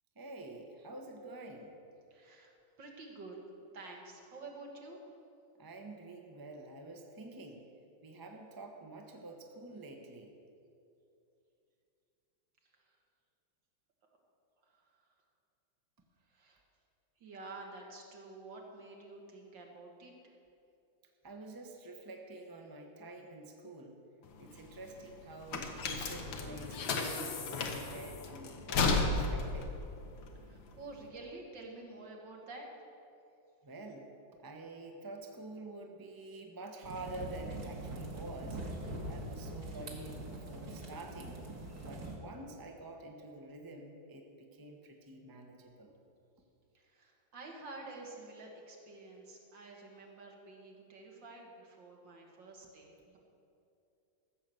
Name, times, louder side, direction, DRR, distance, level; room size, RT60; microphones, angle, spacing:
voice 1, 0.2-1.8 5.6-7.7 8.0-10.3 21.2-24.0 24.4-29.7 33.6-34.1 34.4-38.6 39.1-41.4 41.8-46.0, right 2 dB, 15° right, 2 dB, 0.7 m, -48 dB
voice 2, 2.1-3.4 3.7-5.0 12.6-13.0 14.6-15.0 16.2-16.6 17.2-20.3 30.4-32.8 46.7-53.2, right 2 dB, 70° right, 0 dB, 2.4 m, -50 dB
sound 1, 24.2-31.0, left 3 dB, 85° left, 1.8 m, -34 dB
sound 2, 36.8-42.2, right 1 dB, 55° right, 2.0 m, -43 dB
14.0 x 6.7 x 7.7 m, 2.7 s
omnidirectional pair, 2.1 m